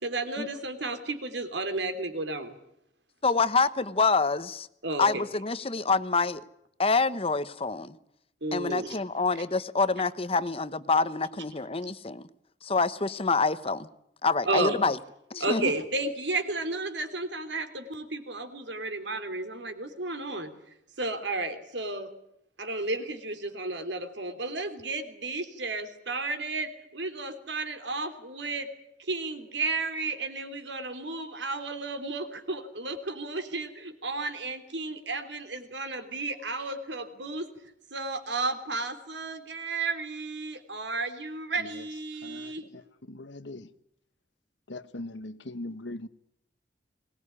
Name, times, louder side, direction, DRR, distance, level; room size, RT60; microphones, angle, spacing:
voice 1, 0.0-2.5 4.8-5.3 8.4-9.0 14.5-14.8 15.4-20.5 21.0-22.1 22.6-28.7 29.0-37.5 37.9-42.7, right 2 dB, 85° right, 3.3 m, -33 dB
voice 2, 3.2-4.7 5.0-6.4 6.8-7.9 8.5-12.3 12.6-13.9 14.2-15.0 15.3-15.7, left 4 dB, 30° left, 1.0 m, -26 dB
voice 3, 42.2-43.7 44.7-46.1, left 2 dB, 85° left, 1.3 m, -41 dB
22.0 x 19.5 x 9.8 m
head